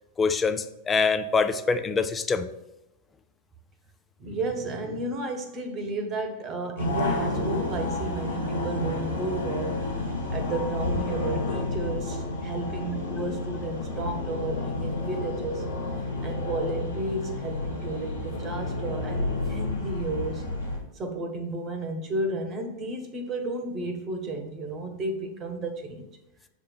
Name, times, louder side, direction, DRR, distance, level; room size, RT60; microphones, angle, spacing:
voice 1, 0.2-2.5, left 4 dB, 15° left, 9 dB, 0.5 m, -24 dB
voice 2, 4.2-9.9 10.3-15.7 16.2-20.4 20.9-26.1, right 2 dB, 30° right, 6 dB, 1.2 m, -33 dB
sound 1, 6.8-20.8, left 2 dB, 80° left, 1.6 m, -30 dB
6.7 x 3.4 x 5.9 m, 0.92 s
figure-of-eight pair, 90°, 0 cm